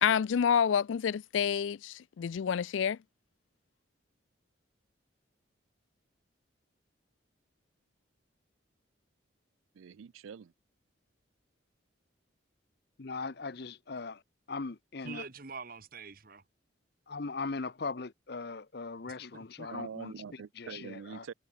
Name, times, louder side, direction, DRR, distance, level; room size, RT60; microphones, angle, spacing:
voice 1, 0.0-3.0, left 7 dB, 70° left, 0.4 m, -28 dB
voice 2, 9.8-10.5 19.7-21.3, right 6 dB, 85° right, 0.4 m, -44 dB
voice 3, 13.0-14.2 14.5-15.2 17.1-21.3, left 4 dB, 55° left, 0.7 m, -39 dB
voice 4, 15.0-16.4 19.0-19.7, right 4 dB, 45° right, 1.3 m, -45 dB
head